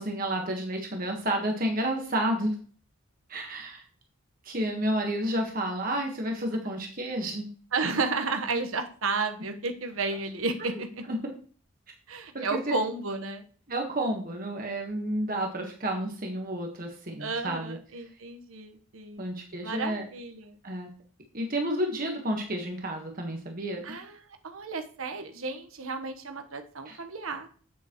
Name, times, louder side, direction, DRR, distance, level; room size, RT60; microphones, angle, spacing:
voice 1, 0.0-2.6 3.3-3.8 4.4-7.5 10.6-10.7 11.1-11.2 12.3-12.8 13.7-17.8 19.2-20.0 20.6-20.9 21.3-23.8 26.8-27.0, right 1 dB, 40° right, 2 dB, 1.4 m, -31 dB
voice 2, 7.7-11.0 12.1-13.4 17.2-19.2 19.6-20.6 23.8-27.5, right 3 dB, 75° right, 7 dB, 1.1 m, -32 dB
8.6 x 8.1 x 3.0 m, 0.43 s
head